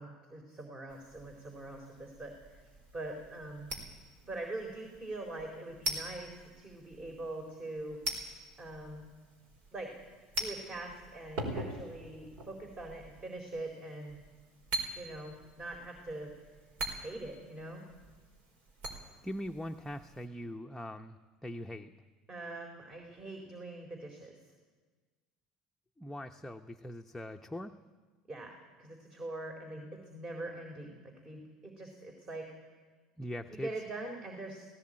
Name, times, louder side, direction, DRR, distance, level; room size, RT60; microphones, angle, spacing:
voice 1, 0.0-2.6 2.9-3.7 4.2-8.0 8.6-9.1 9.7-9.9 10.4-14.2 14.9-16.3 17.0-17.9 22.3-24.4 28.3-32.5 33.5-34.7, right 2 dB, 30° right, 2 dB, 4.0 m, -43 dB
sound 1, 0.9-20.3, right 1 dB, 60° right, 4.8 m, -44 dB
voice 2, 19.2-21.9 26.0-27.7 33.2-33.7, equal, 5° left, 4 dB, 1.0 m, -41 dB
18.0 x 17.5 x 8.9 m, 1.4 s
hypercardioid pair, 70°, 3 cm